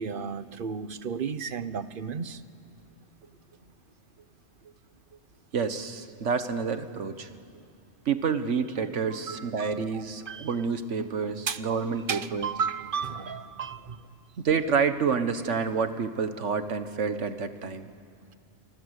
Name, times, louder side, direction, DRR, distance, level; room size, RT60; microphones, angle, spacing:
voice 1, 0.0-2.4 9.3-10.5 11.5-11.6 12.1-14.0, right 6 dB, 50° right, 13 dB, 1.1 m, -33 dB
voice 2, 5.5-7.3 8.1-12.5 14.4-17.9, right 5 dB, 80° right, 10 dB, 1.6 m, -28 dB
28.5 x 25.0 x 8.2 m, 2.3 s
omnidirectional pair, 1.2 m